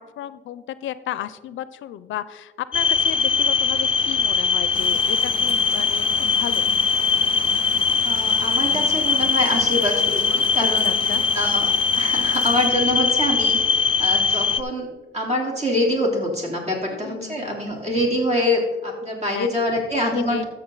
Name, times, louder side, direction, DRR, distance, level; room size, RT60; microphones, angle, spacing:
voice 1, 0.0-6.6 10.6-11.2 16.9-17.8 19.3-19.5 20.1-20.4, left 12 dB, 75° left, 15 dB, 0.5 m, -33 dB
sound 1, 2.7-14.6, left 5 dB, 30° left, 0.5 m, -21 dB
sound 2, 4.7-12.7, right 5 dB, 80° right, 1.3 m, -38 dB
voice 2, 8.0-20.4, left 1 dB, 35° right, 0 dB, 3.4 m, -25 dB
13.5 x 6.9 x 3.9 m, 1.2 s
cardioid pair, 90°, 20 cm